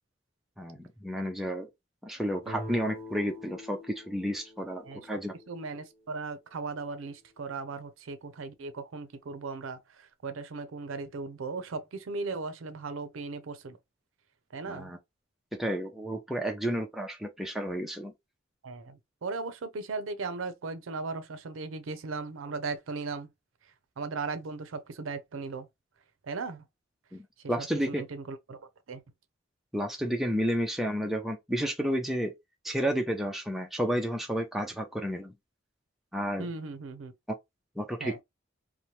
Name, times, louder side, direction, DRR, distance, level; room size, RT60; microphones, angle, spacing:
voice 1, 0.6-1.7 2.0-5.3 14.7-15.0 15.6-18.1 27.1-28.0 29.7-32.3 32.6-35.3 36.1-36.5 37.8-38.2, equal, ahead, 0.4 m, -31 dB
sound 1, 2.4-6.0, left 1 dB, 30° right, 0.9 m, -44 dB
voice 2, 4.8-5.2 5.5-13.8 14.5-14.9 18.6-23.3 24.0-25.7 26.2-26.6 27.6-28.6 28.9-29.0 36.4-37.1 38.0-38.2, right 4 dB, 90° right, 0.5 m, -37 dB
2.8 x 2.1 x 2.9 m
head